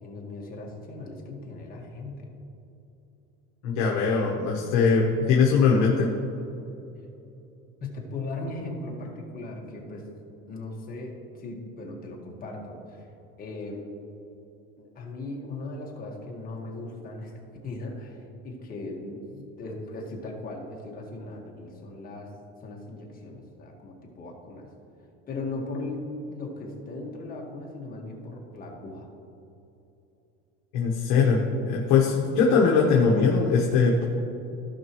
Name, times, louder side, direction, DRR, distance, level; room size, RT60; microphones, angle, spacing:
voice 1, 0.0-2.3 7.8-10.0 10.5-13.1 13.4-13.9 14.8-17.3 17.6-22.3 22.6-24.7 25.3-29.1, left 2 dB, 30° left, -1 dB, 1.7 m, -38 dB
voice 2, 3.6-6.1 30.7-34.0, left 5 dB, 60° left, -1 dB, 1.3 m, -21 dB
16.0 x 5.4 x 3.1 m, 2.9 s
cardioid pair, 150°, 30 cm